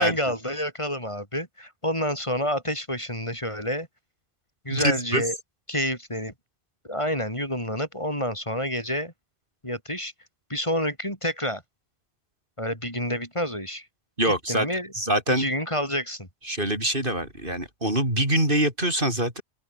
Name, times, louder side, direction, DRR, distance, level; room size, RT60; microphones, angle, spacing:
voice 1, 0.0-3.9 4.6-5.4 5.7-6.3 6.8-9.1 9.6-10.1 10.5-11.6 12.6-13.9 14.2-14.9 15.3-16.3, equal, 30° left, 7.3 m, -28 dB
voice 2, 4.7-5.2 14.2-14.7 14.9-15.5 16.5-19.4, right 1 dB, 50° right, 7.5 m, -24 dB
open air
omnidirectional pair, 1.1 m